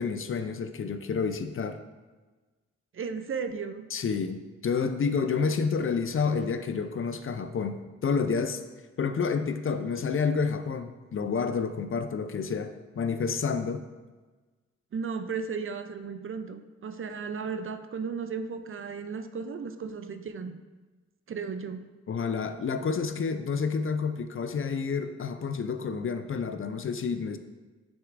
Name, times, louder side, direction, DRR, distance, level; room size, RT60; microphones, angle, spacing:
voice 1, 0.0-1.8 3.9-7.8 8.0-8.6 9.0-13.8 22.1-27.4, left 5 dB, 45° left, 9 dB, 0.5 m, -29 dB
voice 2, 2.9-3.9 14.9-20.6 21.3-21.9, right 5 dB, 45° right, 9 dB, 0.5 m, -35 dB
6.3 x 6.2 x 2.5 m, 1.3 s
supercardioid pair, 45°, 30 cm